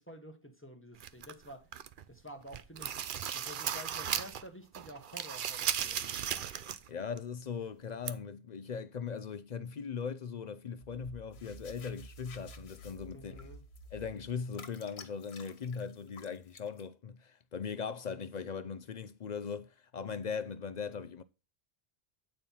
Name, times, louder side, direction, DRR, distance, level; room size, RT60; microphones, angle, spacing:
voice 1, 0.0-1.7 2.1-2.9 3.3-6.1 13.1-13.6, equal, 15° left, 1.1 m, -50 dB
sound 1, 1.0-2.0 2.4-4.5 4.7-6.9 7.2-7.3 8.1-8.2, right 9 dB, 60° right, 0.7 m, -36 dB
voice 2, 6.9-13.5 13.9-21.2, left 6 dB, 50° left, 0.6 m, -39 dB
sound 2, 10.8-14.3, right 1 dB, 80° right, 2.0 m, -52 dB
sound 3, 11.3-16.9, left 6 dB, 90° left, 1.3 m, -54 dB
8.8 x 4.3 x 5.4 m
omnidirectional pair, 1.0 m